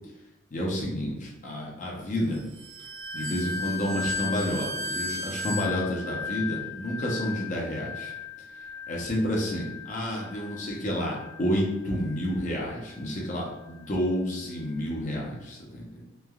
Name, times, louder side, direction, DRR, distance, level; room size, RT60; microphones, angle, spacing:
voice 1, 0.5-2.4 3.1-8.1 8.9-16.0, equal, 40° left, -2 dB, 0.6 m, -30 dB
sound 1, 2.6-11.6 11.9-12.3 12.8-13.1, left 3 dB, 50° right, 1.2 m, -36 dB
3.2 x 2.2 x 2.2 m, 0.96 s
head